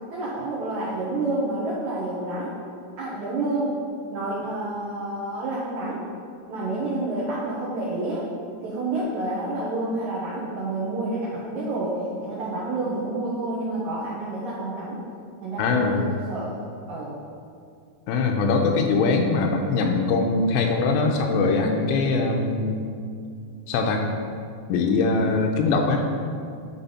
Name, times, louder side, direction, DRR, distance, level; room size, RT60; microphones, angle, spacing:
voice 1, 0.1-2.5 3.0-3.7 4.1-6.0 6.5-8.3 8.6-15.0 15.4-16.5 16.9-17.2, right 2 dB, 75° right, -8 dB, 1.8 m, -29 dB
voice 2, 15.6-16.0 18.1-22.8 23.7-24.1 24.7-26.0, left 3 dB, 85° left, 2 dB, 2.7 m, -22 dB
10.0 x 3.6 x 5.6 m, 2.3 s
omnidirectional pair, 5.1 m